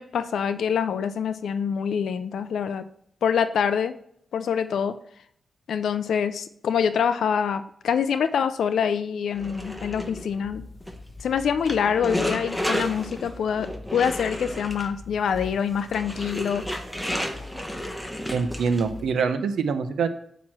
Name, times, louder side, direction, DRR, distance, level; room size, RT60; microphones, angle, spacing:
voice 1, 0.0-2.9 3.2-3.9 4.3-5.0 5.7-10.6 11.2-16.6, left 7 dB, 80° left, 12 dB, 0.4 m, -25 dB
sound 1, 9.3-19.1, equal, 5° left, 0.9 m, -33 dB
voice 2, 18.3-20.1, right 5 dB, 85° right, 10 dB, 0.7 m, -24 dB
8.6 x 3.0 x 6.1 m, 0.67 s
cardioid pair, 95°, 0 cm